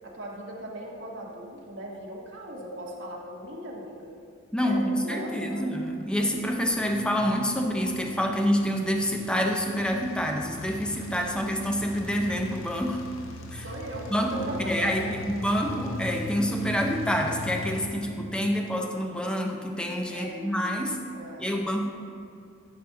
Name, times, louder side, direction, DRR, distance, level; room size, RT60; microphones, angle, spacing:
voice 1, 0.0-4.1 4.6-5.7 13.5-15.1 20.1-21.6, right 1 dB, 60° right, -2 dB, 1.3 m, -39 dB
voice 2, 4.5-13.0 13.5-13.6 14.1-21.0 21.4-21.9, equal, 5° left, 2 dB, 0.5 m, -27 dB
sound 1, 5.9-17.9, left 2 dB, 90° left, 0.7 m, -40 dB
11.5 x 4.1 x 3.7 m, 2.4 s
head